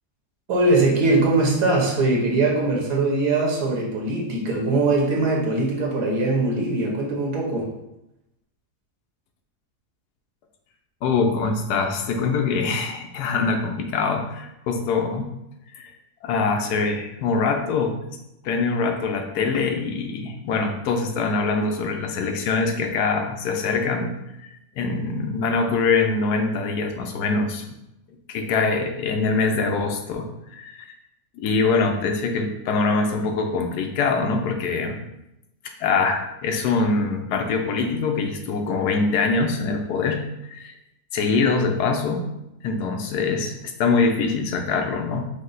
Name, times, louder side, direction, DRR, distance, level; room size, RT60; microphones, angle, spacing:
voice 1, 0.5-7.7, right 2 dB, 80° right, -2 dB, 1.4 m, -21 dB
voice 2, 11.0-15.3 15.8-15.9 16.2-18.2 18.4-24.1 24.4-27.6 28.3-30.9 31.3-35.0 35.8-40.7 41.1-42.2 42.6-45.3, left 4 dB, 80° left, 4 dB, 1.2 m, -24 dB
5.1 x 2.1 x 3.7 m, 0.88 s
omnidirectional pair, 1.7 m